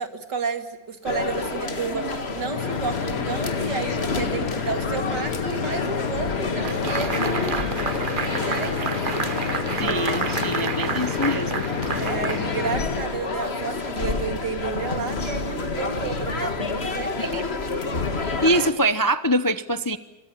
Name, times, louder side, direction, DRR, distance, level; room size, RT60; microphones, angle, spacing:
voice 1, 0.0-7.6 8.3-9.1 12.0-17.2, right 4 dB, 80° right, 7 dB, 3.0 m, -31 dB
sound 1, 1.0-18.7, left 3 dB, 35° left, 2.1 m, -29 dB
sound 2, 2.4-13.1, left 6 dB, 60° left, 1.7 m, -30 dB
sound 3, 6.6-13.1, right 5 dB, 35° right, 1.1 m, -30 dB
voice 2, 9.8-11.6 17.2-17.4 18.2-20.0, right 1 dB, 20° left, 12 dB, 0.5 m, -24 dB
27.0 x 25.0 x 7.3 m, 1.1 s
omnidirectional pair, 1.8 m